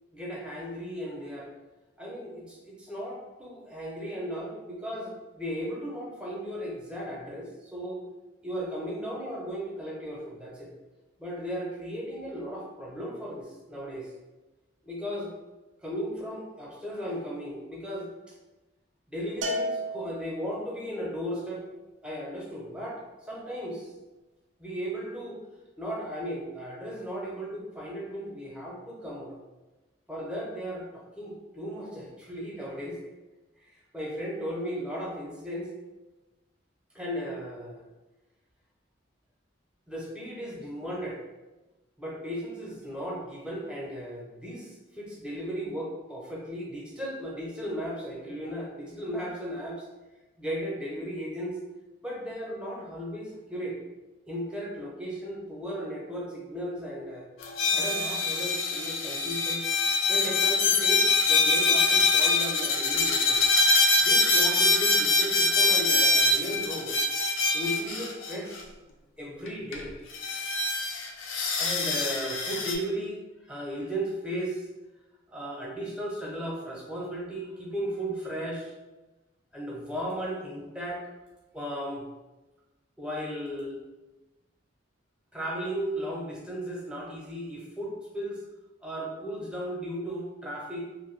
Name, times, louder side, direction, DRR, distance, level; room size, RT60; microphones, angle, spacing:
voice 1, 0.1-1.5 2.0-8.0 8.4-10.7 11.2-14.1 14.8-15.3 15.8-18.1 19.1-21.6 22.0-23.0 23.3-23.9 24.6-25.4 25.8-29.4 30.1-33.0 33.6-33.7 33.9-35.7 36.9-37.8 39.9-41.2 42.0-49.8 50.4-51.6 52.0-53.8 54.3-57.3 57.7-59.6 60.1-63.4 64.0-67.0 67.5-68.7 69.2-69.9 71.6-74.7 75.3-78.7 79.5-81.0 81.5-82.0 83.0-83.8 85.3-88.4 88.8-90.8, equal, 5° right, -4 dB, 0.5 m, -36 dB
Bell, 19.4-20.8, equal, 70° right, 0.4 m, -33 dB
sound 1, 57.4-68.6 69.5-69.6 69.7-69.8 70.1-72.7, left 3 dB, 85° left, 0.4 m, -24 dB
2.5 x 2.2 x 3.1 m, 1.1 s
head